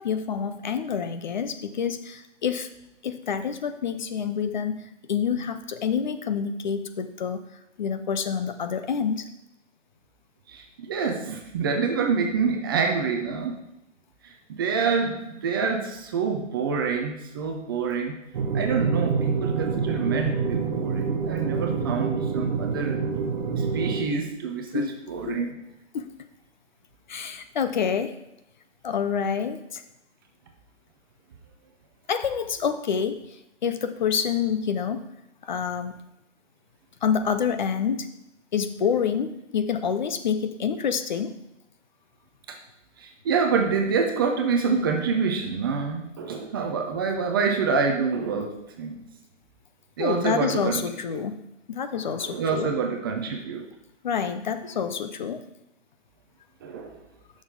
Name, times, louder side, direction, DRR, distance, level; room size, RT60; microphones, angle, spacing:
voice 1, 0.0-2.7 3.0-7.4 7.8-9.3 24.7-24.9 25.3-25.4 25.9-26.1 27.1-28.2 28.8-29.8 32.1-33.4 33.6-35.0 35.4-36.0 37.0-38.1 38.5-41.4 50.0-51.4 51.7-52.7 54.0-55.4, left 7 dB, 40° left, 9 dB, 0.6 m, -27 dB
voice 2, 10.5-13.6 14.2-18.1 18.5-23.1 23.5-25.5 42.5-42.6 43.0-49.0 50.0-50.8 51.1-51.2 52.2-53.7 56.6-57.0, right 5 dB, 20° right, 3 dB, 0.5 m, -27 dB
sound 1, 18.3-24.0, right 5 dB, 35° right, 0.9 m, -26 dB
11.0 x 6.4 x 3.8 m, 0.86 s
figure-of-eight pair, 135°, 37 cm